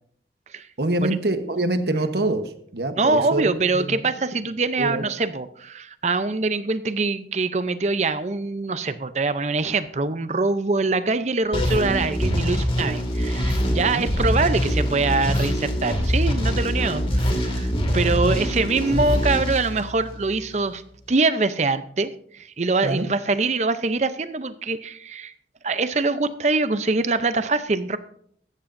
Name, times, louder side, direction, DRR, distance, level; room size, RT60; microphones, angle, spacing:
voice 1, 0.8-3.9 4.8-5.1 13.8-14.1 18.2-18.4 22.8-23.1, right 2 dB, 70° right, 8 dB, 1.1 m, -25 dB
voice 2, 3.0-20.8 21.1-25.3 25.6-28.0, right 3 dB, 40° right, 12 dB, 0.6 m, -24 dB
sound 1, 11.5-20.4, equal, 30° left, 2.1 m, -24 dB
16.0 x 13.0 x 2.6 m, 0.65 s
head